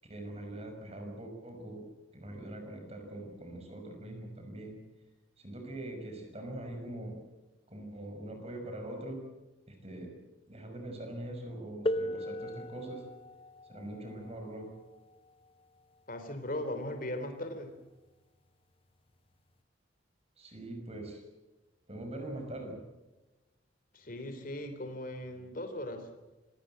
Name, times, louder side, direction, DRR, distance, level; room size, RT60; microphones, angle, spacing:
voice 1, 0.0-1.8 2.1-4.8 5.4-7.1 7.7-9.2 9.7-10.1 10.5-13.0 13.7-14.7 20.4-21.2 21.9-22.8, right 1 dB, 35° right, 4 dB, 5.8 m, -42 dB
sound 1, 11.9-17.3 18.3-18.4 19.3-19.5, left 1 dB, 30° left, 0.8 m, -39 dB
voice 2, 16.1-17.7 23.9-26.1, left 1 dB, 50° left, 7 dB, 3.5 m, -38 dB
26.0 x 18.5 x 7.7 m, 1.1 s
head